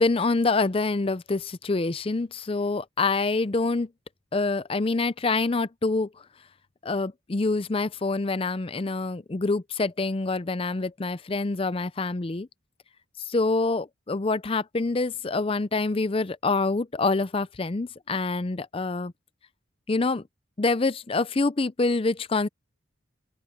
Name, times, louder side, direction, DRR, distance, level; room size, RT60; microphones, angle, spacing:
voice 1, 0.0-3.9 4.3-6.1 6.8-12.5 13.2-19.1 19.9-20.2 20.6-22.5, left 3 dB, 30° left, 0.5 m, -26 dB
open air
head